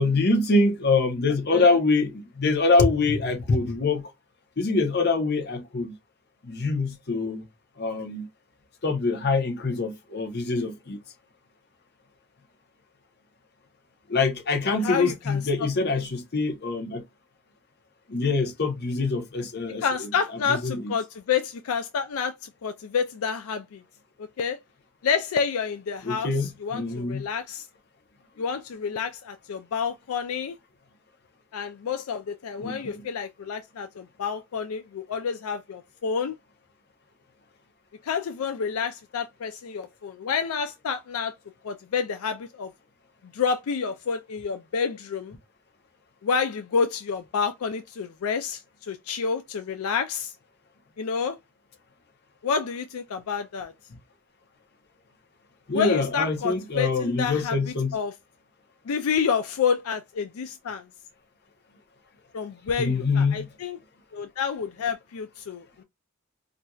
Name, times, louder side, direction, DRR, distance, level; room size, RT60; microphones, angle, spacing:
voice 1, 0.0-4.1 4.6-6.0 6.4-7.4 7.8-8.3 8.8-11.0 14.1-17.0 18.1-20.9 26.0-27.3 32.6-33.1 55.7-58.0 62.8-63.5, left 3 dB, 50° left, 0.8 m, -25 dB
voice 2, 14.8-15.4 19.8-23.8 24.2-24.6 25.0-27.6 28.4-30.6 31.5-36.3 38.0-41.3 41.6-42.7 43.3-45.4 46.2-50.3 51.0-51.4 52.4-53.7 55.7-58.1 58.9-60.9 62.3-63.8 64.1-65.8, left 6 dB, 80° left, 0.4 m, -29 dB
4.2 x 2.5 x 2.3 m
head